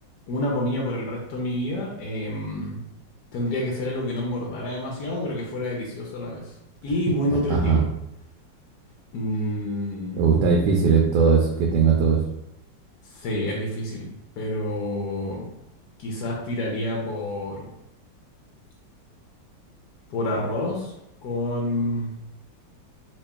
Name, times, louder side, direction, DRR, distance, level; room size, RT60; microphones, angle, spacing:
voice 1, 0.3-2.8 3.3-6.5 6.8-7.9 9.1-10.2 13.0-14.1 14.4-15.5 16.0-17.7 20.1-20.9 21.2-22.1, left 1 dB, 65° left, -2 dB, 1.1 m, -28 dB
voice 2, 7.3-7.8 10.2-12.2, right 5 dB, 75° right, 0 dB, 1.1 m, -19 dB
3.0 x 2.9 x 3.4 m, 0.84 s
omnidirectional pair, 2.1 m